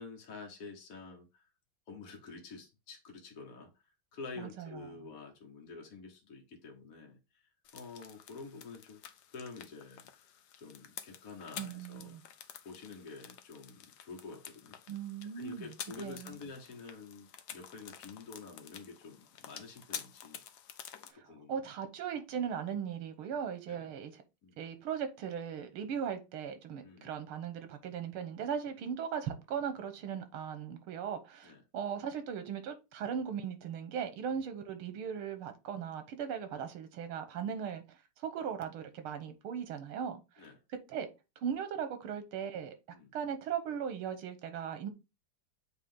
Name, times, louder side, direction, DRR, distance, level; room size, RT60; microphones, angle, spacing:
voice 1, 0.0-1.5 1.9-3.7 4.1-9.0 9.3-10.1 10.6-12.2 12.6-14.8 15.3-20.4 21.1-21.6 23.7-23.9 24.4-24.6 26.8-27.1 31.4-31.6 36.5-36.6 40.4-40.6 42.9-43.1, left 4 dB, 50° left, 1.3 m, -48 dB
voice 2, 4.4-4.8 11.6-12.2 14.9-15.7 16.0-16.4 21.1-24.2 24.6-40.5 40.9-41.1 41.4-42.8 43.1-44.9, right 8 dB, 85° right, 1.9 m, -38 dB
sound 1, 7.6-21.1, left 9 dB, 65° left, 1.0 m, -50 dB
8.2 x 3.1 x 3.7 m
omnidirectional pair, 2.3 m